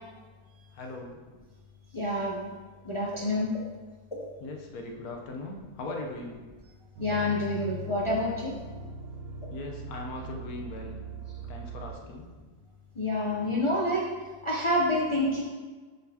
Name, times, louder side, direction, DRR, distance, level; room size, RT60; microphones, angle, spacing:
voice 1, 0.7-1.2 4.4-6.4 9.5-11.0 11.5-12.4, left 2 dB, 70° left, 1 dB, 1.2 m, -39 dB
voice 2, 1.9-2.5 2.8-3.5 4.1-4.3 7.0-8.5 13.0-14.1 14.4-15.4, left 1 dB, 50° left, -3 dB, 0.3 m, -28 dB
sound 1, 6.9-12.2, right 2 dB, 60° right, 1.0 m, -41 dB
10.0 x 4.1 x 2.8 m, 1.4 s
omnidirectional pair, 1.7 m